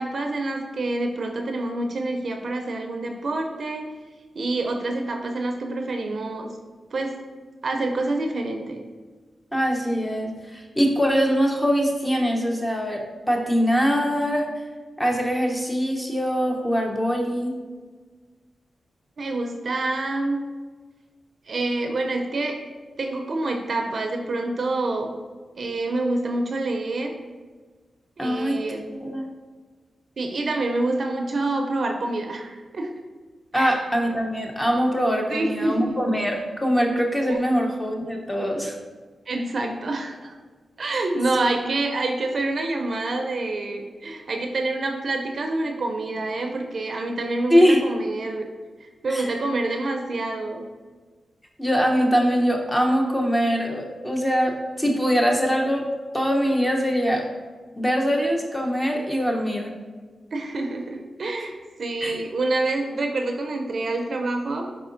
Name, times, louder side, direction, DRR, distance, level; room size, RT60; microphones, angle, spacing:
voice 1, 0.0-3.9 4.3-6.5 6.9-7.2 7.6-8.8 19.2-20.4 21.5-22.6 23.0-25.1 25.6-27.1 28.2-28.9 30.2-32.9 33.5-33.8 35.3-35.9 37.3-37.4 39.3-40.3 40.8-48.5 48.8-50.6 60.3-64.7, right 2 dB, 60° right, 3 dB, 0.4 m, -27 dB
voice 2, 9.5-14.5 15.0-17.6 28.2-29.3 33.5-38.8 47.5-47.8 49.1-49.3 51.6-57.3 57.8-59.8 62.0-62.2, equal, 15° left, 1 dB, 0.7 m, -23 dB
4.9 x 3.7 x 2.5 m, 1.4 s
cardioid pair, 50°, 0 cm